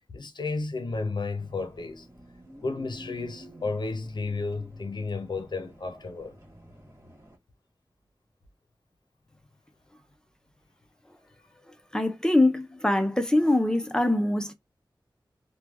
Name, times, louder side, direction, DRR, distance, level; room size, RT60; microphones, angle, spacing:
voice 1, 0.1-2.1 2.6-6.3, left 3 dB, 65° left, 0.6 m, -32 dB
sound 1, 1.4-7.4, right 1 dB, 30° right, 1.3 m, -50 dB
voice 2, 11.9-14.5, left 1 dB, 10° left, 0.5 m, -23 dB
3.1 x 2.2 x 2.3 m
wide cardioid pair, 85°, 8 cm